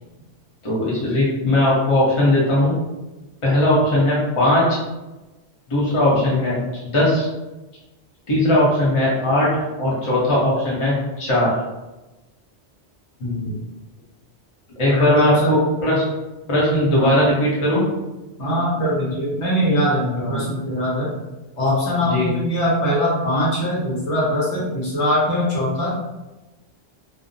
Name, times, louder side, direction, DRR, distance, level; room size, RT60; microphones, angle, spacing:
voice 1, 0.6-2.7 3.4-4.6 5.7-6.6 6.8-7.3 8.3-9.5 9.8-11.5 14.8-16.0 16.5-17.8 20.2-20.4 22.0-22.3, left 1 dB, 30° left, -6 dB, 0.7 m, -18 dB
voice 2, 13.2-13.6 14.9-15.6 16.9-17.1 18.4-21.1 21.6-26.0, equal, 75° left, -5 dB, 1.1 m, -22 dB
2.5 x 2.0 x 2.6 m, 1.1 s
omnidirectional pair, 1.2 m